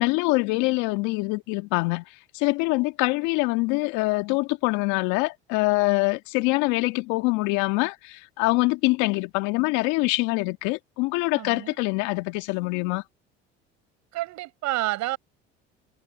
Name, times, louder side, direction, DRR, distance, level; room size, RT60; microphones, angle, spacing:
voice 1, 0.0-2.0 2.3-13.0, left 24 dB, 70° left, 2.0 m, -24 dB
voice 2, 11.3-11.8 14.1-15.2, right 17 dB, 65° right, 6.6 m, -29 dB
hypercardioid pair, 70°, 30 cm